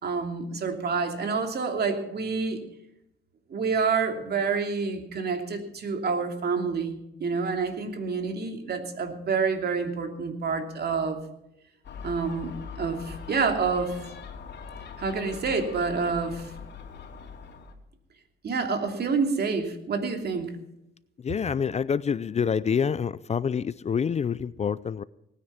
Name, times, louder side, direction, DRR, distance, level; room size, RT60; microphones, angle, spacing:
voice 1, 0.0-2.6 3.5-11.2 12.0-14.1 15.0-16.5 18.4-20.5, right 5 dB, 55° right, 2.9 m, -28 dB
Gull seagull, 11.8-17.7, left 6 dB, 60° left, 2.9 m, -42 dB
voice 2, 21.2-25.0, left 7 dB, 35° left, 0.5 m, -27 dB
19.0 x 9.8 x 5.9 m
cardioid pair, 90°, 20 cm